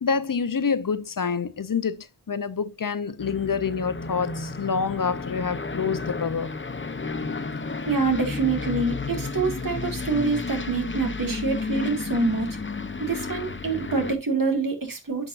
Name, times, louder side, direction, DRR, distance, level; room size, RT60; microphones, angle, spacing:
voice 1, 0.0-6.5, left 6 dB, 75° left, 0.8 m, -27 dB
Aircraft, 3.2-14.2, left 3 dB, 35° left, 0.9 m, -32 dB
voice 2, 7.9-12.5 13.0-15.3, right 4 dB, 85° right, 2.2 m, -26 dB
10.0 x 6.2 x 2.5 m
wide cardioid pair, 50°, 33 cm